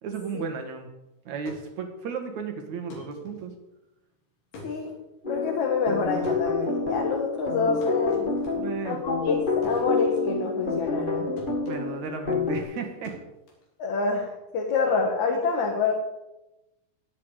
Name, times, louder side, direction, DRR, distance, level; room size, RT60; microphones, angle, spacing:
voice 1, 0.0-0.9 1.3-3.5 8.5-9.0 11.7-13.2, right 5 dB, 55° right, 5 dB, 2.7 m, -34 dB
sound 1, 1.2-11.1 11.4-14.3, left 2 dB, 85° left, 5.9 m, -48 dB
sound 2, 5.2-12.6, left 4 dB, 25° left, 1.0 m, -28 dB
voice 2, 5.3-8.3 8.8-11.3 13.8-15.9, left 4 dB, 55° left, -1 dB, 2.7 m, -27 dB
22.0 x 8.5 x 4.9 m, 0.96 s
omnidirectional pair, 4.6 m